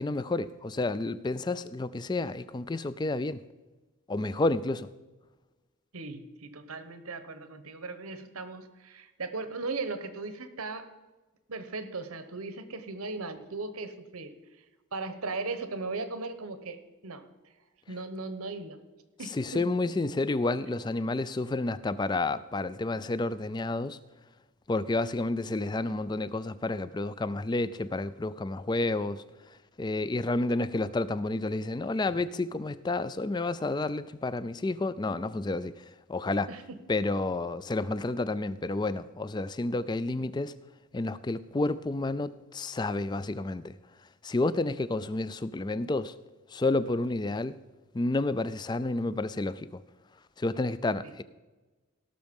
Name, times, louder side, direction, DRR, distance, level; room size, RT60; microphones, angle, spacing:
voice 1, 0.0-3.4 4.1-4.9 19.2-24.0 24.7-29.2 29.8-36.5 36.9-40.5 40.9-43.8 44.2-46.2 46.5-47.6 47.9-49.8 50.4-51.2, left 2 dB, 20° left, 16 dB, 0.3 m, -30 dB
voice 2, 5.9-10.9 11.5-14.3 14.9-17.2 17.9-18.8 19.2-19.6 36.5-36.6 51.0-51.1, right 3 dB, 85° right, 11 dB, 1.1 m, -37 dB
17.0 x 6.4 x 5.3 m, 1.2 s
head